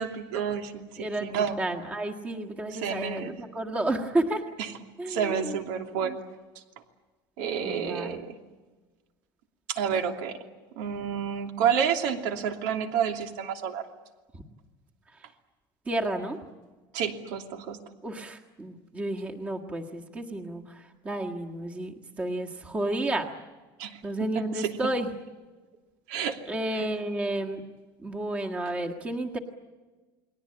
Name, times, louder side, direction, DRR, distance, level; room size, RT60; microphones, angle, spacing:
voice 1, 0.0-1.6 2.7-3.4 5.1-6.2 7.4-8.4 9.7-10.4 10.8-13.8 16.9-17.8 23.8-24.8 26.1-26.4 26.7-26.9, right 7 dB, 80° right, 4 dB, 2.9 m, -30 dB
voice 2, 1.0-4.4 5.0-5.6 6.0-6.2 7.6-8.2 14.3-14.4 15.2-15.3 15.8-16.4 18.0-23.3 24.0-25.1 26.5-27.6 28.0-29.4, right 1 dB, 15° right, 2 dB, 1.7 m, -31 dB
30.0 x 21.0 x 8.7 m, 1.3 s
cardioid pair, 180°, 10 cm